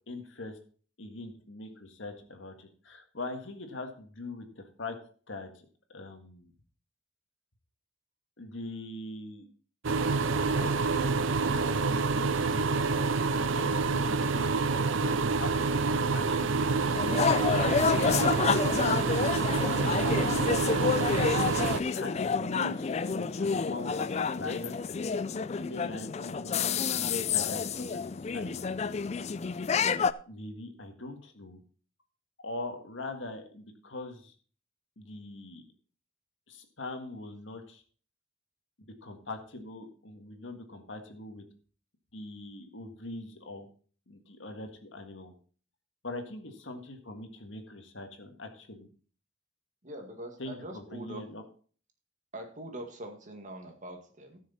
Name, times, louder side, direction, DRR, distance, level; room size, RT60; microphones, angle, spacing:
voice 1, 0.1-0.6 1.0-5.0 5.3-6.5 8.4-9.5 10.4-12.7 13.5-15.5 15.9-17.9 18.8-20.9 21.7-24.8 25.5-28.7 30.3-31.6 32.4-34.3 35.0-35.6 36.5-37.8 39.0-41.4 42.1-43.7 44.1-45.3 46.0-48.9 50.4-51.4, left 2 dB, 75° left, 6 dB, 1.7 m, -42 dB
sound 1, 9.8-21.8, right 4 dB, 85° right, 0.6 m, -27 dB
sound 2, 16.9-30.1, left 5 dB, 35° left, 0.4 m, -29 dB
voice 2, 49.8-51.2 52.3-54.4, right 1 dB, 40° right, 4 dB, 2.0 m, -43 dB
15.0 x 6.4 x 4.2 m, 0.41 s
head